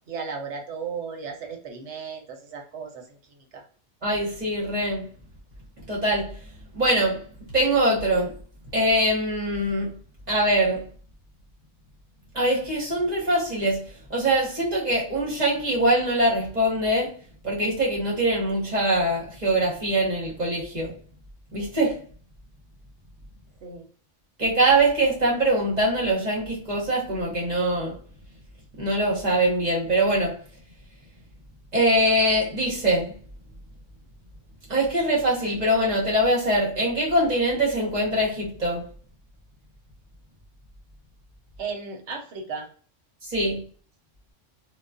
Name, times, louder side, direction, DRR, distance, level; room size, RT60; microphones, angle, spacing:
voice 1, 0.1-3.0 3.5-3.6 23.6-23.8 41.6-42.7, right 5 dB, 70° right, 1.0 m, -35 dB
voice 2, 4.0-5.1 5.9-6.3 6.7-7.2 7.5-8.3 8.7-9.9 10.3-10.9 12.3-13.8 14.1-17.1 17.4-20.9 21.5-22.0 24.4-28.0 28.8-30.3 31.7-33.1 34.7-38.8 43.2-43.6, right 1 dB, 35° right, 1.0 m, -23 dB
2.3 x 2.3 x 2.4 m
omnidirectional pair, 1.3 m